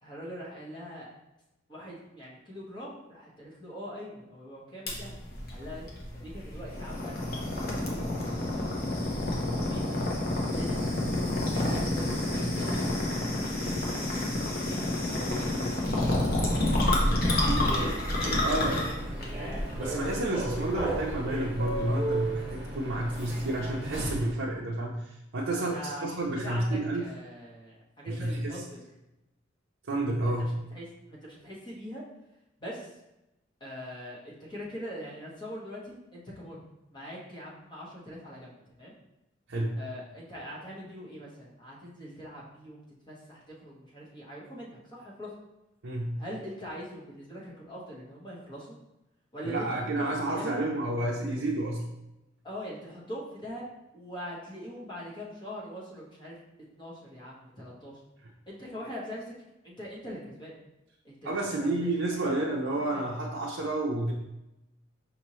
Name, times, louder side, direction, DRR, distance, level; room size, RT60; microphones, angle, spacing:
voice 1, 0.0-1.1 1.7-5.1 5.5-8.5 9.5-9.9 10.4-14.2 14.9-16.6 17.0-17.7 18.2-18.9 19.2-19.6 25.4-28.8 30.2-32.0 32.6-32.9 33.6-36.6 36.9-39.0 39.8-45.3 46.2-48.8 49.3-50.6 52.4-53.6 53.9-56.4 56.8-58.0 58.5-59.2 59.6-60.5 61.0-61.9 62.3-62.4 62.8-63.1, equal, 25° left, -5 dB, 1.1 m, -42 dB
sound 1, 4.9-21.1, left 1 dB, 50° left, 0.9 m, -29 dB
Human voice / Subway metro underground, 16.4-24.4, right 1 dB, 5° right, 1.2 m, -33 dB
voice 2, 18.4-18.8 19.7-27.1 28.1-28.6 29.9-30.5 39.5-39.8 45.8-46.2 49.4-51.8 61.2-64.1, right 1 dB, 65° right, -4 dB, 0.5 m, -30 dB
5.3 x 2.8 x 3.0 m, 0.92 s
head